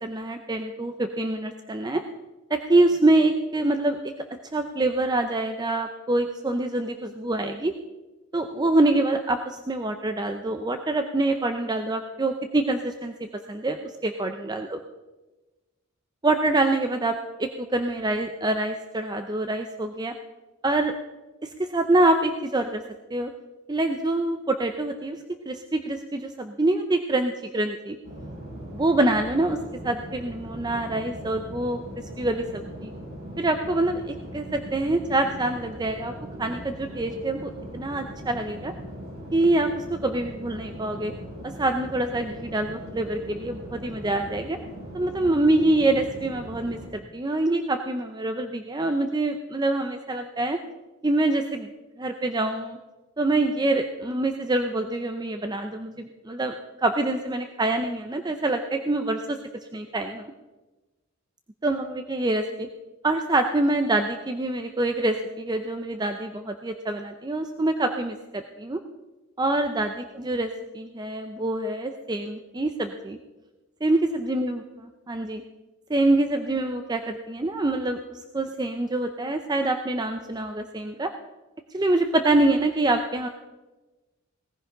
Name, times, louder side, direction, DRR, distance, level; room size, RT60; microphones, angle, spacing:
voice 1, 0.0-2.0 2.5-4.1 4.5-7.7 8.3-13.1 13.5-14.8 16.2-20.1 20.6-20.9 21.4-22.8 23.1-23.3 23.7-25.2 25.5-28.0 28.7-29.6 29.8-31.8 32.2-32.9 33.4-36.1 36.4-38.7 39.3-41.1 41.4-44.6 44.9-50.6 51.0-51.7 52.0-52.8 53.2-56.5 56.8-59.4 59.7-60.3 61.6-62.7 63.0-68.8 69.4-73.2 73.8-75.4 75.9-81.1 81.7-83.3, right 2 dB, 20° right, 7 dB, 0.5 m, -25 dB
sound 1, 28.0-46.9, equal, 45° right, 6.2 m, -40 dB
18.0 x 14.5 x 3.8 m, 1.1 s
head